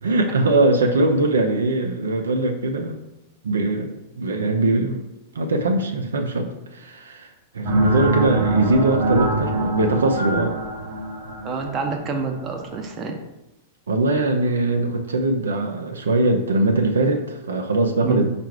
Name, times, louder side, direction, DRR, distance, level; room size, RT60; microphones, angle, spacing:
voice 1, 0.0-3.0 3.4-5.0 5.3-10.6 13.9-18.2, right 2 dB, 75° right, 4 dB, 0.5 m, -21 dB
sound 1, 7.6-13.0, right 2 dB, 55° right, 0.9 m, -24 dB
voice 2, 11.4-13.2 18.0-18.2, right 4 dB, 30° right, 3 dB, 0.7 m, -27 dB
4.6 x 2.5 x 4.5 m, 0.93 s
figure-of-eight pair, 100°, 0 cm